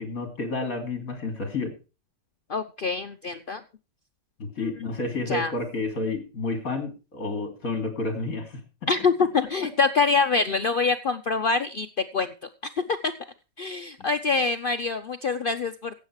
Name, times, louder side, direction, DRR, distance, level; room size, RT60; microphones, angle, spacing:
voice 1, 0.0-1.7 4.4-8.6 14.0-14.1, left 3 dB, 50° left, 6 dB, 3.3 m, -30 dB
voice 2, 2.5-3.6 5.3-5.5 8.9-11.9 12.1-12.3 13.0-13.1 13.6-15.9, left 4 dB, 85° left, 8 dB, 0.4 m, -25 dB
16.0 x 8.2 x 4.7 m, 0.32 s
omnidirectional pair, 1.9 m